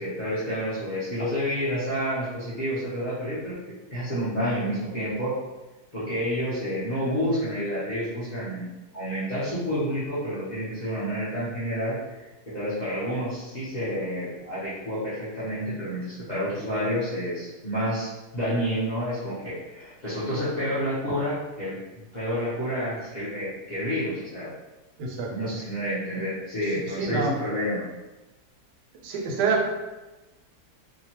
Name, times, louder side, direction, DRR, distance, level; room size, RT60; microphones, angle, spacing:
voice 1, 0.0-3.6 3.9-5.3 5.9-21.8 22.1-24.5 25.3-27.8, equal, 45° left, -10 dB, 0.5 m, -29 dB
voice 2, 25.0-25.5 27.0-27.4 29.0-29.7, right 4 dB, 85° right, 1 dB, 1.2 m, -26 dB
2.8 x 2.2 x 2.8 m, 1.1 s
omnidirectional pair, 1.7 m